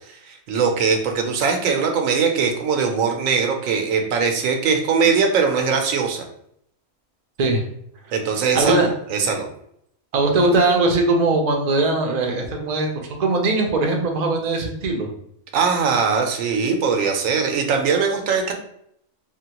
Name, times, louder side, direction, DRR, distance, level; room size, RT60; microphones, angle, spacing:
voice 1, 0.1-6.2 8.1-9.5 15.5-18.5, right 5 dB, 85° right, 4 dB, 1.0 m, -21 dB
voice 2, 8.5-8.9 10.1-15.1, right 2 dB, 55° right, 2 dB, 0.4 m, -20 dB
3.4 x 2.1 x 2.9 m, 0.72 s
omnidirectional pair, 1.3 m